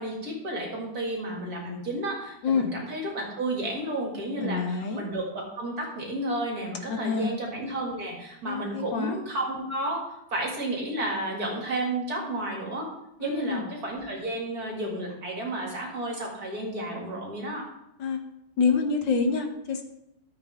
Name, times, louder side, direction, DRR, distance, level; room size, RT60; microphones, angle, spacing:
voice 1, 0.0-10.0 10.3-12.9 13.2-17.6, right 1 dB, 50° right, -1 dB, 2.9 m, -32 dB
voice 2, 4.4-5.0 6.9-7.4 8.4-9.2 13.2-13.6 18.0-18.2 18.6-19.8, left 5 dB, 70° left, 5 dB, 1.7 m, -27 dB
13.5 x 7.9 x 3.6 m, 0.81 s
omnidirectional pair, 2.2 m